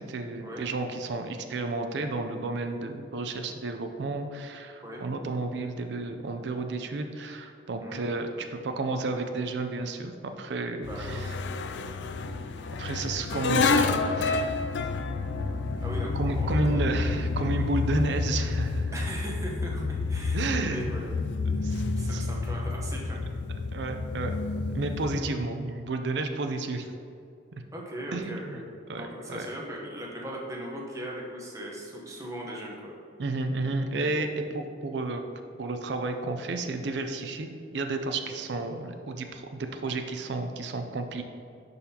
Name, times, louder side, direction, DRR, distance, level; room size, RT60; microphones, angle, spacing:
voice 1, 0.0-11.4 12.8-14.6 16.1-18.9 20.3-20.9 21.6-22.3 23.7-24.4 24.7-26.9 28.1-28.6 28.9-29.5 33.2-35.2 35.6-41.2, right 3 dB, 65° right, 6 dB, 0.5 m, -32 dB
sound 1, 10.8-25.2, left 3 dB, 70° left, 0.3 m, -29 dB
voice 2, 10.8-11.5 15.8-16.9 18.9-21.2 21.6-23.2 27.7-28.6 28.9-32.9, right 1 dB, 15° right, -2 dB, 0.9 m, -39 dB
11.0 x 4.0 x 2.9 m, 2.4 s
head